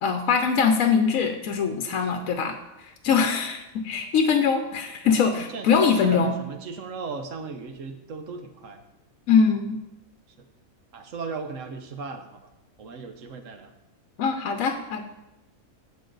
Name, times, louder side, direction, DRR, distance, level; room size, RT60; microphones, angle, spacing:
voice 1, 0.0-6.3 9.3-9.8 14.2-15.0, left 6 dB, 70° left, 6 dB, 1.1 m, -22 dB
voice 2, 5.0-8.8 10.4-10.5 10.9-12.5 12.8-13.7, right 4 dB, 65° right, 7 dB, 1.2 m, -36 dB
14.5 x 5.4 x 3.9 m, 0.96 s
omnidirectional pair, 1.5 m